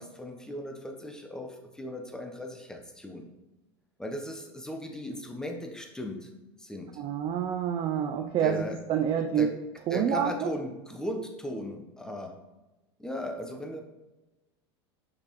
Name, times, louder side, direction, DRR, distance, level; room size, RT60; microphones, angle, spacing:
voice 1, 0.0-3.3 4.0-6.3 6.6-7.0 8.4-8.8 9.4-9.6 9.9-12.4 13.0-13.8, left 1 dB, 5° left, 3 dB, 1.0 m, -37 dB
voice 2, 7.0-8.6 8.9-9.5 9.9-10.5, right 8 dB, 40° right, 4 dB, 0.5 m, -27 dB
6.5 x 5.7 x 3.1 m, 1.0 s
hypercardioid pair, 105°, 14 cm